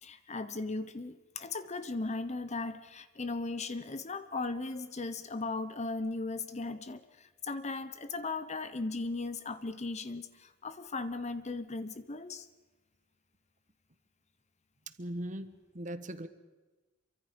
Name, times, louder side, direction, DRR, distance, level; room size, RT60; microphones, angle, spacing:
voice 1, 0.0-12.5, left 3 dB, 35° left, 11 dB, 0.9 m, -37 dB
voice 2, 15.0-16.3, right 1 dB, 40° right, 11 dB, 1.3 m, -39 dB
27.5 x 24.0 x 5.3 m, 1.2 s
head